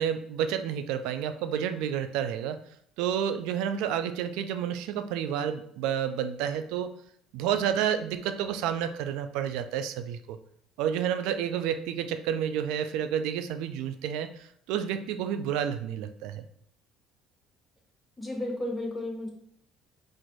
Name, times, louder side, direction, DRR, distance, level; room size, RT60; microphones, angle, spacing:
voice 1, 0.0-2.6 3.0-6.9 7.3-10.4 10.8-14.3 14.7-16.4, right 9 dB, 80° right, 10 dB, 0.4 m, -30 dB
voice 2, 18.2-19.3, left 1 dB, 20° left, -1 dB, 1.4 m, -33 dB
4.3 x 2.5 x 4.6 m, 0.66 s
supercardioid pair, 95°, 0 cm